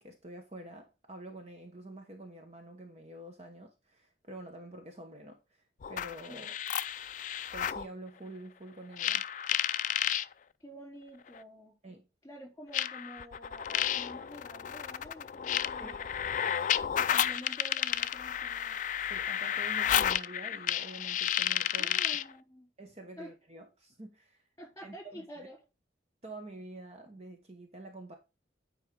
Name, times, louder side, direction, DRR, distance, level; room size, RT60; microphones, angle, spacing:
voice 1, 0.0-6.6 7.5-9.2 11.8-12.1 15.8-16.0 19.0-22.0 22.8-24.4 24.8-25.5 26.2-28.2, right 1 dB, 35° right, 1.1 m, -47 dB
sound 1, 5.8-7.9 9.0-10.3 11.3-11.4 12.7-22.3, left 10 dB, 45° left, 0.3 m, -32 dB
voice 2, 10.6-11.8 12.2-16.1 17.0-18.8 21.8-22.7 23.2-23.3 24.6-25.6, equal, 15° left, 3.8 m, -49 dB
9.7 x 4.8 x 3.8 m
head